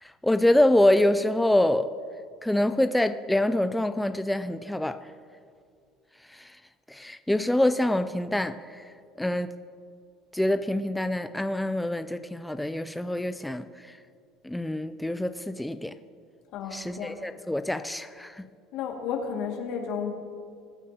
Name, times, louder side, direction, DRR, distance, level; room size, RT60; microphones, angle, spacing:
voice 1, 0.0-1.9 2.4-5.0 6.3-6.6 6.9-8.8 9.2-9.5 10.3-14.0 14.4-15.9 16.7-18.5, left 1 dB, 5° left, 10 dB, 0.4 m, -25 dB
voice 2, 16.5-17.2 18.7-20.1, left 7 dB, 65° left, 1 dB, 2.1 m, -32 dB
22.0 x 9.0 x 2.9 m, 2.2 s
supercardioid pair, 120°, 0 cm